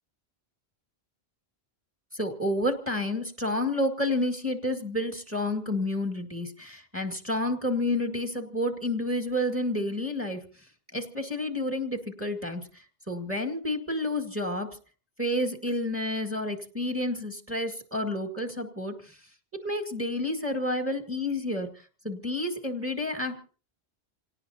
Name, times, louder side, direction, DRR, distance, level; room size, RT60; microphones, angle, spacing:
voice 1, 2.1-10.4 10.9-14.8 15.2-19.2 19.6-21.7 22.0-23.5, left 1 dB, 10° right, 5 dB, 2.0 m, -30 dB
28.0 x 18.0 x 2.8 m, 0.37 s
omnidirectional pair, 1.1 m